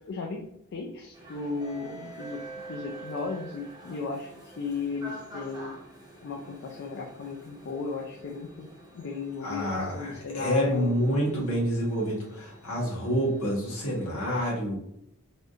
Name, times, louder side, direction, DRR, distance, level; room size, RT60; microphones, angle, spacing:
voice 1, 0.1-0.4 0.7-2.4 2.7-5.7 6.2-8.7 8.9-11.0, left 4 dB, 50° left, 1 dB, 0.3 m, -35 dB
sound 1, 1.1-14.1, right 2 dB, 20° right, 0.6 m, -47 dB
voice 2, 9.4-14.7, equal, 70° left, -4 dB, 1.3 m, -28 dB
3.4 x 2.4 x 2.6 m, 0.77 s
head